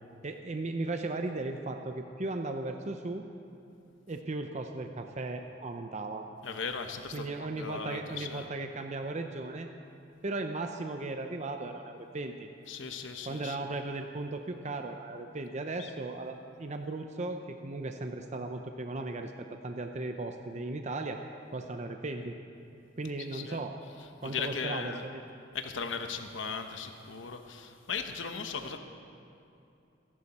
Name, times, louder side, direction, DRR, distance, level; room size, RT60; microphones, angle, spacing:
voice 1, 0.2-3.2 4.1-6.2 7.1-9.7 10.2-12.5 13.3-21.2 21.5-22.3 23.0-23.8 24.2-25.2, right 2 dB, 40° right, 5 dB, 0.7 m, -36 dB
voice 2, 6.4-8.5 12.7-13.6 15.8-15.9 23.3-23.6 24.2-25.0 25.5-28.8, left 5 dB, 80° left, 6 dB, 0.9 m, -37 dB
28.0 x 11.0 x 4.2 m, 2.6 s
head